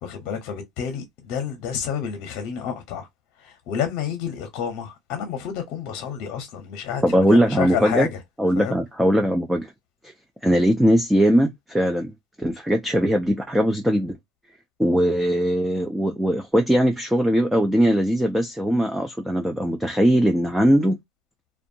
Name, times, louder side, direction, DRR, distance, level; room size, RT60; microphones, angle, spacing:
voice 1, 0.0-3.1 3.4-8.2 8.6-8.8, left 8 dB, 45° left, 0.7 m, -29 dB
voice 2, 7.0-8.1 8.4-9.7 10.4-12.1 12.4-14.2 14.8-21.0, equal, 5° right, 0.3 m, -20 dB
2.6 x 2.2 x 2.6 m
cardioid pair, 175°, 0 cm